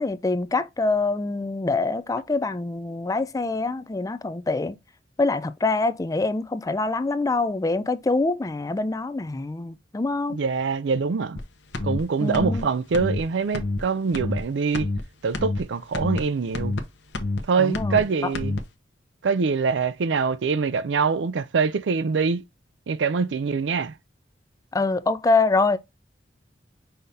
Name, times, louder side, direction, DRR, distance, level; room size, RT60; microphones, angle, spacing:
voice 1, 0.0-4.8 5.2-10.4 12.2-12.7 17.6-18.1 24.7-25.8, left 3 dB, 20° left, 0.4 m, -25 dB
voice 2, 10.3-11.4 11.8-14.9 15.2-16.8 17.5-18.6 19.2-22.4 22.9-23.9, right 5 dB, 80° right, 0.4 m, -24 dB
sound 1, 11.4-11.5 11.7-12.0 12.3-12.6 12.9-13.2 13.5-13.8 14.1-14.4 14.7-15.0 15.3-15.6 15.9-16.2 16.5-16.8 17.1-17.4 17.7-18.0 18.3-18.6, left 2 dB, 70° left, 0.9 m, -27 dB
5.6 x 2.7 x 3.4 m
head